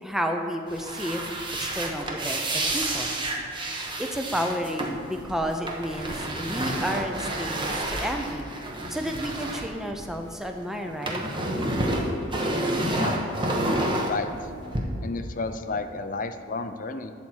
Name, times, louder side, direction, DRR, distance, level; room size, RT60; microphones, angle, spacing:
voice 1, 0.0-1.2 1.6-3.1 4.0-8.5 8.9-11.2, equal, ahead, 4 dB, 0.7 m, -31 dB
sound 1, 0.7-10.5 10.7-14.8, right 1 dB, 25° right, 1.1 m, -29 dB
voice 2, 12.7-13.2 13.8-14.5 15.0-17.1, left 3 dB, 40° left, 9 dB, 0.5 m, -32 dB
11.5 x 4.3 x 7.9 m, 2.5 s
head